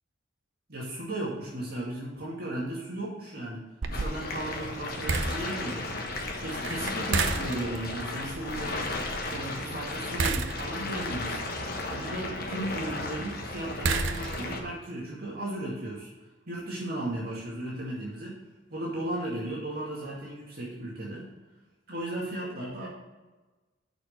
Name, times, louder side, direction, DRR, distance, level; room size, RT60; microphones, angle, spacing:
voice 1, 0.7-3.6 3.9-5.9 6.4-8.9 9.2-11.4 11.9-16.1 16.5-18.4 18.7-21.3 21.9-22.9, right 1 dB, 50° right, -6 dB, 2.4 m, -35 dB
sound 1, 3.8-14.7, right 3 dB, 75° right, 0.7 m, -34 dB
sound 2, 3.9-14.6, left 3 dB, 50° left, 1.2 m, -35 dB
6.7 x 5.9 x 6.5 m, 1.2 s
head